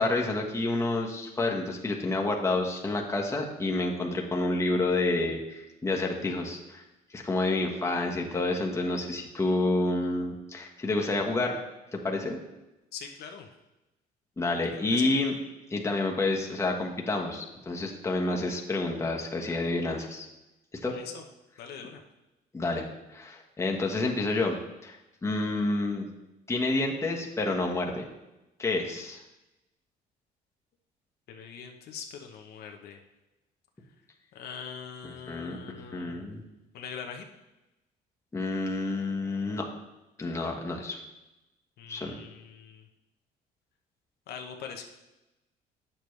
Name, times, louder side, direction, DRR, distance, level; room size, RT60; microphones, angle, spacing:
voice 1, 0.0-6.8 7.1-11.6 11.9-12.4 14.4-15.3 15.7-20.3 20.8-20.9 22.5-24.6 24.8-25.0 25.2-26.1 26.5-28.1 28.6-29.2 35.0-36.4 38.3-39.6 40.2-41.0 41.9-42.2, left 2 dB, 15° left, 0 dB, 1.2 m, -29 dB
voice 2, 12.9-13.5 14.9-15.1 20.9-21.2 21.6-22.0 31.3-33.0 34.3-36.3 36.7-37.3 41.8-42.8 44.3-44.8, left 7 dB, 70° left, 4 dB, 0.9 m, -42 dB
8.8 x 6.9 x 3.2 m, 0.98 s
cardioid pair, 110°, 17 cm